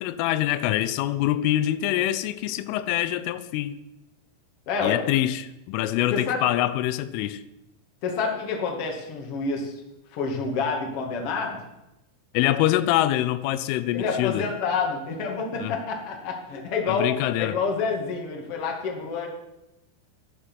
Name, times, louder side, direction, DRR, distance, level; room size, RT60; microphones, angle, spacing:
voice 1, 0.0-3.8 4.8-7.4 12.3-14.5 15.6-15.8 16.9-17.6, left 13 dB, 85° left, 13 dB, 3.2 m, -25 dB
voice 2, 4.7-5.0 6.1-6.4 8.0-9.7 10.1-11.6 13.9-19.3, left 5 dB, 40° left, 1 dB, 2.2 m, -28 dB
14.0 x 11.5 x 6.2 m, 0.92 s
omnidirectional pair, 5.7 m